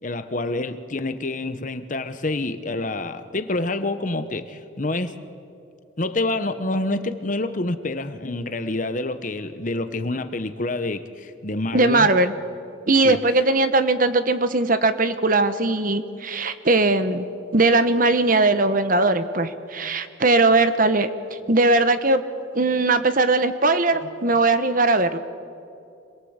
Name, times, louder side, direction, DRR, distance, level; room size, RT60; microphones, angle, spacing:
voice 1, 0.0-5.2 6.0-12.1 13.0-13.2, left 2 dB, 40° left, 10 dB, 1.0 m, -27 dB
voice 2, 11.7-12.3 12.9-17.2 17.5-21.1 21.5-22.2 22.5-25.2, right 2 dB, 40° right, 11 dB, 1.1 m, -19 dB
26.5 x 21.5 x 8.1 m, 2.5 s
head